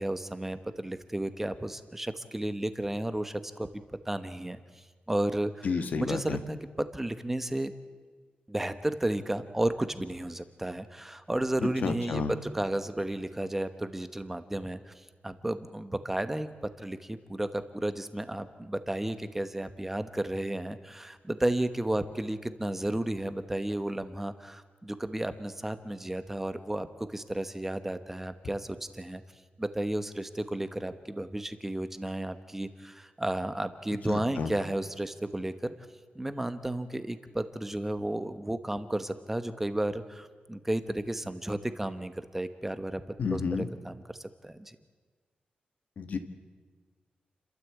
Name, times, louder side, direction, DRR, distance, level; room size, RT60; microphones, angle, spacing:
voice 1, 0.0-4.6 5.1-5.7 5.9-7.7 8.5-14.9 15.2-29.2 29.6-35.7 36.1-43.0 43.3-43.4 43.8-44.2 44.4-44.8, right 1 dB, 10° right, 11 dB, 1.0 m, -33 dB
voice 2, 5.6-6.4 11.6-12.3 34.1-34.5 43.2-43.7 46.0-46.2, left 5 dB, 60° left, 8 dB, 1.6 m, -31 dB
30.0 x 13.0 x 8.3 m, 1.5 s
wide cardioid pair, 170°, 3 cm